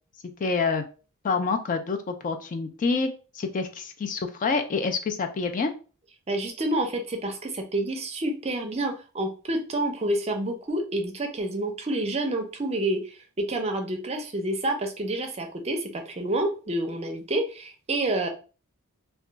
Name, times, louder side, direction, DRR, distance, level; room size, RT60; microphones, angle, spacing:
voice 1, 0.4-0.8 1.2-3.1 3.3-5.7, left 4 dB, 35° left, 7 dB, 0.3 m, -27 dB
voice 2, 6.3-18.3, right 1 dB, 30° right, 4 dB, 0.5 m, -28 dB
2.2 x 2.2 x 3.8 m, 0.35 s
head